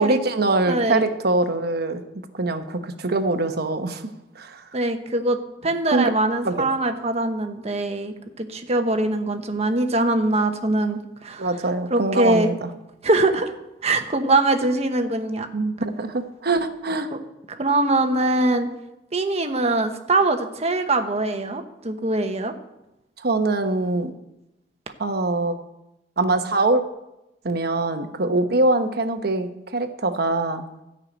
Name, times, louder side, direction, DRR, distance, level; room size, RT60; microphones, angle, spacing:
voice 1, 0.0-2.0 2.3-4.0 4.4-4.6 5.9-6.1 6.4-6.7 11.4-12.7 15.5-17.1 23.2-24.1 25.0-25.6 26.2-26.8 27.4-30.6, right 2 dB, 60° right, 7 dB, 1.0 m, -23 dB
voice 2, 0.6-1.1 4.7-5.4 5.6-11.6 11.9-12.5 13.0-13.5 13.8-15.5 17.5-18.7 19.1-22.5, right 2 dB, 35° right, 6 dB, 1.1 m, -22 dB
13.0 x 5.8 x 8.8 m, 0.91 s
head